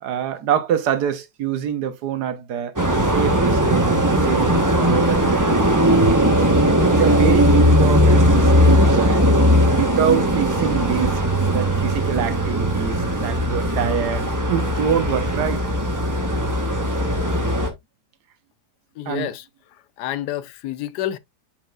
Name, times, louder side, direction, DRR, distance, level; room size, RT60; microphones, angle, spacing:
voice 1, 0.0-2.7 3.1-6.4 6.9-9.2 9.7-11.2 11.5-12.9 13.2-15.6 19.1-19.3, right 8 dB, 75° right, 1.4 m, -25 dB
sound 1, 2.8-17.7, equal, 15° right, 0.9 m, -18 dB
voice 2, 19.0-19.4 20.0-21.2, left 12 dB, 85° left, 1.2 m, -28 dB
7.0 x 5.6 x 2.3 m
omnidirectional pair, 1.8 m